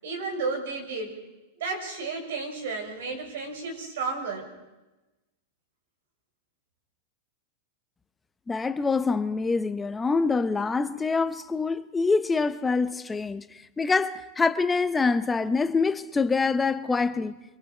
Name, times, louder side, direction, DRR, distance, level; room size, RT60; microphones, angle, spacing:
voice 1, 0.0-1.1 1.6-4.5, right 4 dB, 80° right, 6.6 m, -32 dB
voice 2, 8.5-17.4, left 4 dB, 10° left, 0.8 m, -25 dB
27.0 x 23.0 x 5.6 m
supercardioid pair, 145°, 0 cm